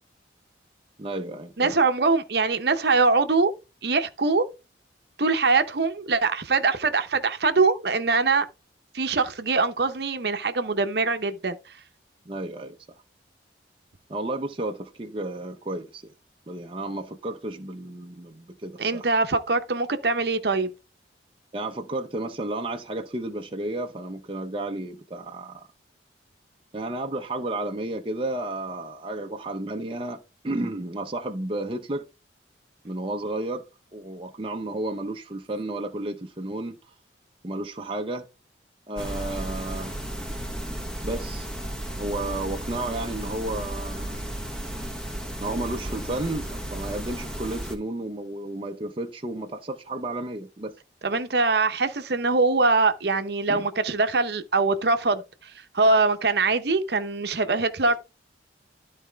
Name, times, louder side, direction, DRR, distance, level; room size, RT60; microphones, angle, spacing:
voice 1, 1.0-1.8 12.3-12.8 14.1-16.1 16.5-19.1 21.5-25.7 26.7-32.0 32.8-33.6 33.9-36.8 37.4-38.3 38.9-39.9 41.0-41.5 42.0-44.2 45.4-50.7 53.5-53.7, right 2 dB, 30° right, 0.7 m, -32 dB
voice 2, 1.6-3.5 3.8-4.4 5.2-8.5 8.9-11.6 18.8-20.7 51.0-55.2 55.7-58.0, right 3 dB, 60° right, 0.8 m, -23 dB
sound 1, 39.0-47.8, right 1 dB, 5° left, 1.1 m, -34 dB
12.5 x 4.2 x 3.5 m
head